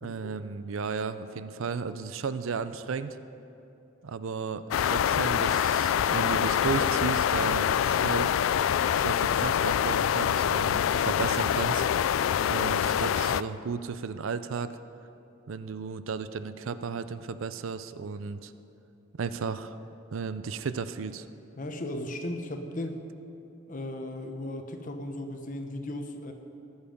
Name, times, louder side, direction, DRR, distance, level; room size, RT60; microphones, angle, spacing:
voice 1, 0.0-3.2 4.0-8.3 9.0-11.9 12.5-14.7 15.5-18.5 19.2-19.8 20.1-21.3, right 5 dB, 85° right, 13 dB, 0.5 m, -34 dB
sound 1, 4.7-13.4, left 9 dB, 85° left, 0.3 m, -25 dB
voice 2, 21.6-23.0 23.7-26.3, left 1 dB, 40° left, 5 dB, 1.1 m, -36 dB
20.5 x 7.2 x 5.3 m, 2.8 s
head